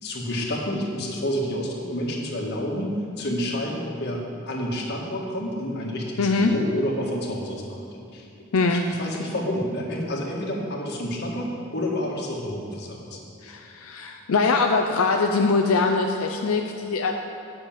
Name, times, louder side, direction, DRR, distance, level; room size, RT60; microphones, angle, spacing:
voice 1, 0.0-7.9 8.1-8.3 8.7-13.2, equal, 50° left, -2 dB, 1.8 m, -29 dB
voice 2, 6.2-6.5 8.5-8.9 13.4-17.1, left 4 dB, 85° left, 3 dB, 0.6 m, -22 dB
10.0 x 6.3 x 7.4 m, 2.5 s
head